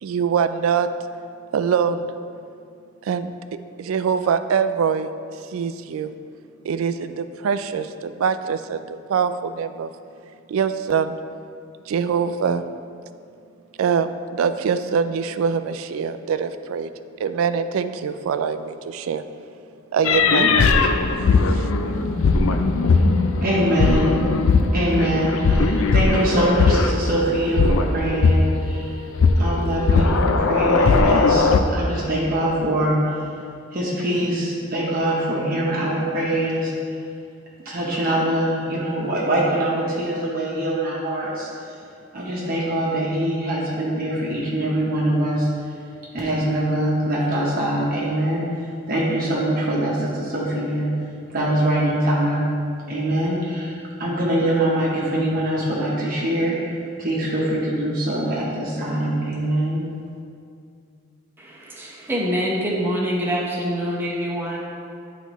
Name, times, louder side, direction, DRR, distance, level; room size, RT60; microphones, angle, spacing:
voice 1, 0.0-0.9 1.5-2.1 3.0-3.3 3.8-5.1 5.5-6.1 6.6-9.9 10.5-11.2 11.9-12.6 13.8-16.9 17.2-19.2 19.9-20.7 21.5-21.7, right 6 dB, 80° right, 11 dB, 0.3 m, -23 dB
sound 1, 20.0-27.2 27.5-28.7 29.1-31.6, left 4 dB, 75° left, 0.4 m, -18 dB
voice 2, 23.4-24.3 24.7-28.9 29.4-33.0 33.7-36.7 37.6-41.5 42.1-45.5 46.1-48.4 48.9-50.9 51.3-52.5 52.9-56.7 57.0-59.9, right 1 dB, 45° right, -5 dB, 1.0 m, -23 dB
voice 3, 61.4-64.6, equal, 10° right, -5 dB, 1.0 m, -25 dB
10.0 x 4.1 x 3.0 m, 2.4 s
head